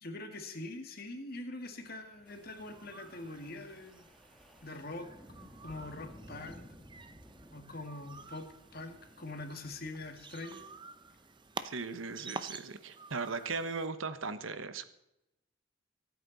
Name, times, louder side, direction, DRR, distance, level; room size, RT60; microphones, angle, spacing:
voice 1, 0.0-4.1 4.6-5.1 5.6-6.6 7.5-10.7, left 2 dB, 50° left, 5 dB, 2.1 m, -43 dB
Wind, 1.9-12.2, equal, ahead, 1.5 m, -57 dB
sound 1, 2.3-13.9, right 4 dB, 25° right, 0.7 m, -50 dB
voice 2, 11.6-14.9, right 4 dB, 75° right, 12 dB, 1.2 m, -38 dB
25.5 x 8.7 x 4.1 m, 0.88 s
head